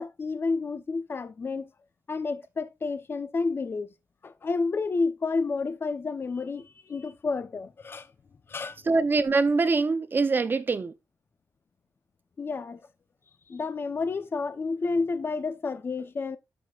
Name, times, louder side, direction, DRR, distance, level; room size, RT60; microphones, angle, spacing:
voice 1, 0.0-1.7 2.1-3.9 4.2-8.1 8.5-8.8 12.4-12.8 13.5-16.4, left 4 dB, 35° left, 0.9 m, -30 dB
voice 2, 8.9-10.9, right 3 dB, 30° right, 0.8 m, -24 dB
11.0 x 7.4 x 2.5 m
wide cardioid pair, 160°, 7 cm